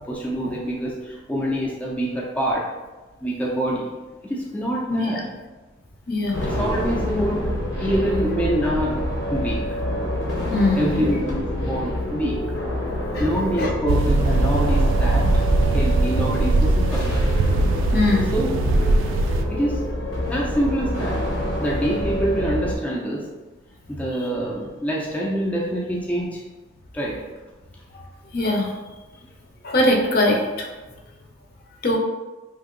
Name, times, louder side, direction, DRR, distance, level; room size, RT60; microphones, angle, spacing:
voice 1, 0.1-2.6 3.2-4.0 4.2-5.2 6.4-7.5 7.8-9.0 9.3-9.6 10.8-12.4 13.2-15.2 15.7-17.3 18.3-18.5 19.5-19.8 20.3-21.2 21.6-23.3 23.9-26.4 26.9-27.2, equal, 10° left, -4 dB, 0.4 m, -25 dB
voice 2, 4.9-5.2 6.1-6.4 10.5-11.0 13.1-13.7 17.9-18.3 28.3-28.7 29.6-30.7 31.8-32.0, left 1 dB, 50° left, 0 dB, 0.6 m, -21 dB
sound 1, 6.3-22.8, left 1 dB, 80° left, 0.9 m, -27 dB
sound 2, 13.9-19.4, right 2 dB, 85° right, 0.3 m, -20 dB
2.8 x 2.6 x 3.7 m, 1.2 s
head